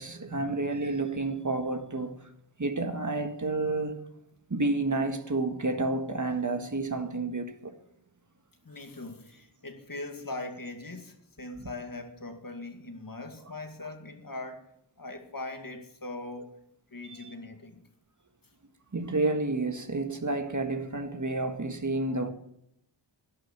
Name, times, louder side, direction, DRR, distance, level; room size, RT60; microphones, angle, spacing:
voice 1, 0.0-2.2 2.6-4.0 4.5-7.8 17.1-17.3 18.9-22.3, right 2 dB, 40° right, 1.7 m, -30 dB
voice 2, 8.6-16.5 16.9-17.8, left 2 dB, 45° left, 2.3 m, -41 dB
11.5 x 11.5 x 7.4 m
wide cardioid pair, 70°, 45 cm